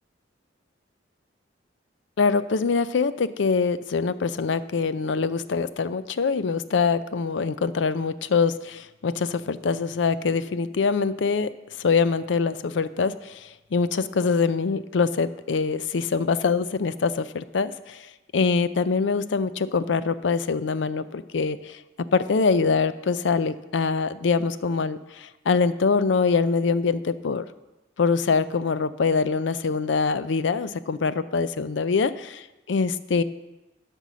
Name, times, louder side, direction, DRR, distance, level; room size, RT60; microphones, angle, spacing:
voice 1, 2.2-11.5 11.8-21.8 22.1-27.4 28.0-33.2, left 5 dB, 70° left, 14 dB, 0.5 m, -24 dB
12.5 x 5.3 x 6.2 m, 1.0 s
head